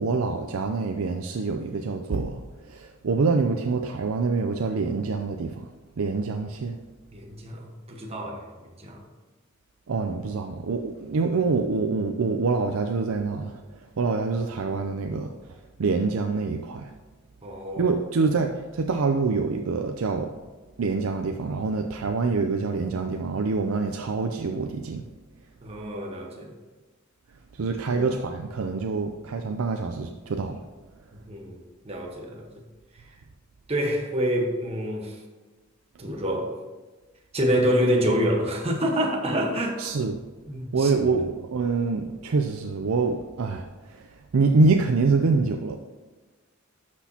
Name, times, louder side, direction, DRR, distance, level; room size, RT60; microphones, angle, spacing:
voice 1, 0.0-5.7 6.0-6.8 9.9-16.9 17.8-20.4 20.8-25.0 27.5-30.6 39.8-40.2 40.7-45.8, right 4 dB, 80° right, 0.5 m, -26 dB
voice 2, 7.1-9.0 17.4-17.9 25.6-26.6 27.8-28.2 31.1-32.6 32.9-33.1 33.7-35.2 36.0-36.5 37.3-39.9 40.5-40.9 41.2-41.3, equal, 30° right, 1.2 m, -27 dB
11.5 x 6.1 x 2.9 m
head